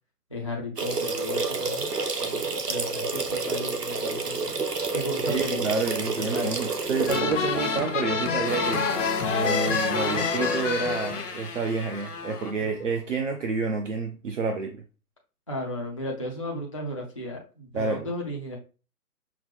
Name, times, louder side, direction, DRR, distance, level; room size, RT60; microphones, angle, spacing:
voice 1, 0.3-1.9 2.2-4.6 4.9-6.6 12.6-12.9 15.5-18.6, left 1 dB, 25° left, 0.4 m, -35 dB
sound 1, 0.8-7.2, right 4 dB, 85° right, 0.9 m, -29 dB
voice 2, 5.3-8.8 9.3-14.8 17.7-18.1, right 4 dB, 55° right, 0.6 m, -29 dB
Motorcycle, 6.6-12.6, left 4 dB, 80° left, 1.0 m, -34 dB
sound 2, 7.1-11.3, left 5 dB, 50° left, 0.8 m, -27 dB
5.7 x 2.1 x 3.4 m
figure-of-eight pair, 135°, 46 cm